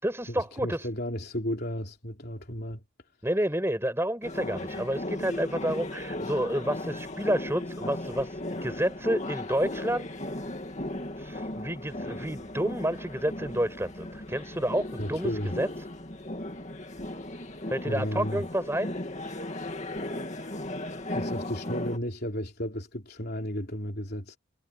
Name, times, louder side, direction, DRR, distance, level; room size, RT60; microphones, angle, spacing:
voice 1, 0.0-0.9 3.2-10.1 11.2-15.7 17.7-18.9, right 1 dB, 10° right, 5.3 m, -30 dB
voice 2, 0.6-2.8 15.0-15.6 17.9-18.4 21.1-24.4, equal, 50° left, 3.5 m, -33 dB
sound 1, 4.2-22.0, left 1 dB, 35° left, 2.4 m, -36 dB
head